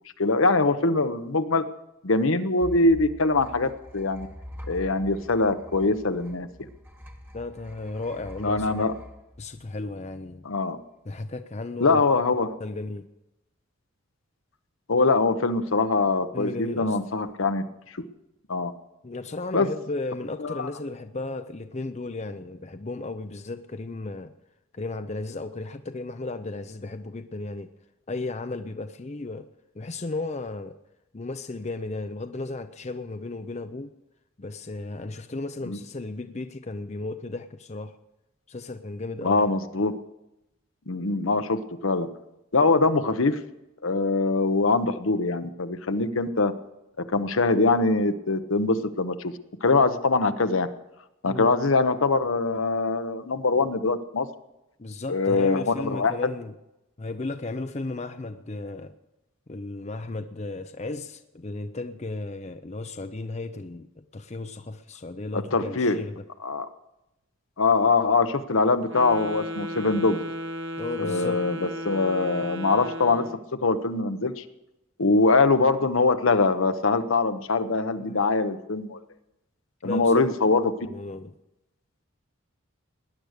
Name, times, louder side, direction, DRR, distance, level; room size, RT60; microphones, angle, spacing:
voice 1, 0.2-1.6 2.0-4.3 4.7-6.5 8.4-8.9 10.4-10.8 11.8-12.6 14.9-17.6 17.9-18.0 18.5-18.7 19.5-19.7 20.4-20.7 35.7-35.8 39.2-39.9 40.9-42.1 42.5-43.4 43.8-46.5 47.1-49.3 49.6-50.7 51.2-54.3 55.1-56.1 65.3-66.0 66.4-66.7 67.6-70.2 71.0-71.6 71.8-73.3 73.6-74.4 75.0-79.0 79.8-80.9, left 3 dB, 70° left, 10 dB, 1.0 m, -23 dB
sound 1, 2.6-10.1, left 1 dB, 10° right, 1.4 m, -44 dB
voice 2, 7.3-8.8 9.4-10.5 11.0-12.0 12.6-13.0 16.3-17.0 19.0-24.3 24.7-27.7 28.1-29.5 29.7-30.7 31.1-33.9 34.4-38.0 38.5-39.5 51.3-51.5 54.8-56.5 57.0-58.9 59.5-66.2 70.8-71.4 78.0-78.2 79.8-80.3 80.8-81.3, left 2 dB, 30° left, 9 dB, 0.6 m, -34 dB
Wind instrument woodwind instrument, 68.8-73.4, equal, 60° right, 1.1 m, -35 dB
18.5 x 10.5 x 6.6 m, 0.92 s
head